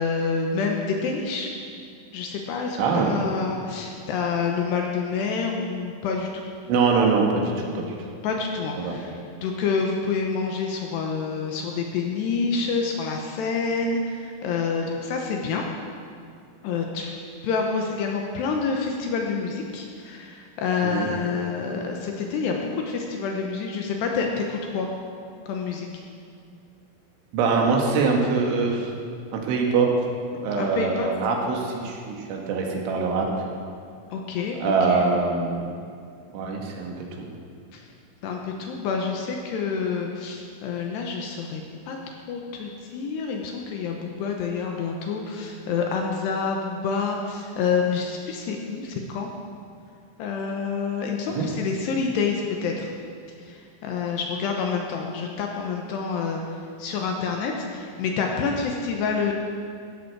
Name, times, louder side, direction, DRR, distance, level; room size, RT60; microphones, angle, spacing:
voice 1, 0.0-1.5 2.1-6.4 8.2-15.6 16.6-24.9 25.5-25.9 30.6-31.1 34.1-35.1 37.7-37.9 38.2-41.6 41.9-42.0 42.3-49.3 50.2-52.9 53.5-59.3, left 5 dB, 75° left, 1 dB, 2.7 m, -28 dB
voice 2, 2.8-3.1 6.7-8.0 8.8-9.0 20.8-21.1 27.3-28.9 29.3-29.9 30.4-33.3 34.6-35.6 36.3-37.3 51.4-51.5, right 4 dB, 75° right, 0 dB, 4.0 m, -23 dB
16.0 x 13.5 x 4.7 m, 2.3 s
omnidirectional pair, 5.6 m